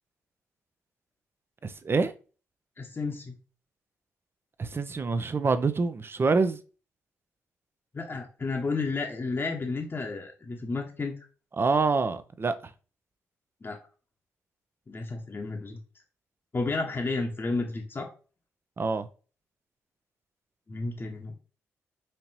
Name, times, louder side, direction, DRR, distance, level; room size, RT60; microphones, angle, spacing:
voice 1, 1.6-2.1 4.6-6.6 11.6-12.5 18.8-19.1, right 4 dB, 35° right, 0.5 m, -26 dB
voice 2, 2.8-3.4 7.9-11.1 13.6-13.8 14.9-15.8 16.5-18.1 20.7-21.4, left 3 dB, 35° left, 0.8 m, -32 dB
4.4 x 2.8 x 2.7 m
hypercardioid pair, 45°, 7 cm